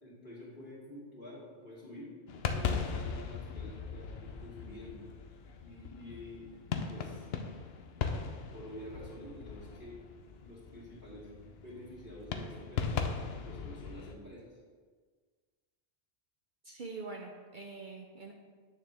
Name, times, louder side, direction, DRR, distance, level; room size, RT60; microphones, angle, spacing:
voice 1, 0.0-2.1 2.5-5.0 5.6-6.5 6.7-7.3 8.5-10.0 10.4-13.1 13.4-14.5, left 1 dB, 45° left, -8 dB, 2.7 m, -48 dB
sound 1, 2.3-14.1, left 6 dB, 65° left, 0.9 m, -39 dB
voice 2, 16.6-18.3, right 3 dB, 50° right, 1 dB, 0.8 m, -44 dB
9.0 x 6.6 x 3.4 m, 1.5 s
omnidirectional pair, 1.2 m